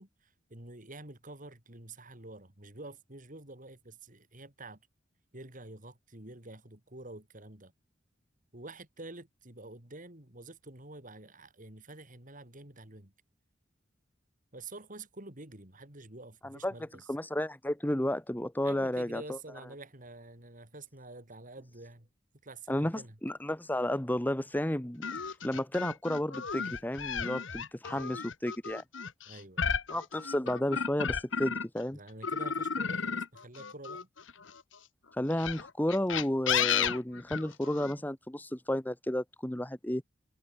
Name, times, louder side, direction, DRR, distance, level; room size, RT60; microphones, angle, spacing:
voice 1, 0.0-4.8 5.3-7.7 8.5-13.1 14.5-17.1 18.6-22.1 22.4-23.2 29.3-29.8 31.9-34.1, right 2 dB, 45° right, 4.1 m, -48 dB
voice 2, 16.4-19.4 22.7-25.0 25.4-28.8 29.9-32.0 35.1-40.0, left 1 dB, 10° left, 1.1 m, -32 dB
sound 1, 25.0-31.8 32.2-34.6 35.3-37.9, left 7 dB, 80° left, 1.4 m, -33 dB
head